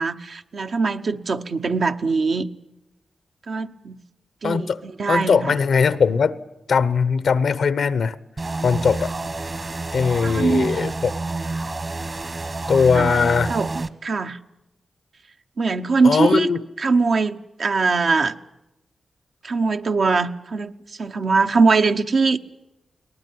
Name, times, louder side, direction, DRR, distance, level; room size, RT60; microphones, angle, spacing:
voice 1, 0.0-2.5 3.5-4.0 4.4-5.6 10.2-10.7 12.9-14.4 15.6-16.5 16.8-18.3 19.4-20.7 21.0-22.4, right 4 dB, 70° right, 0.9 m, -22 dB
voice 2, 4.4-4.8 5.1-6.3 6.7-8.2 8.6-9.1 9.9-11.1 12.7-13.5 16.0-16.6, left 5 dB, 80° left, 0.9 m, -20 dB
sound 1, 8.4-13.9, right 3 dB, 45° right, 1.3 m, -28 dB
22.5 x 19.0 x 9.3 m
cardioid pair, 45°, 0 cm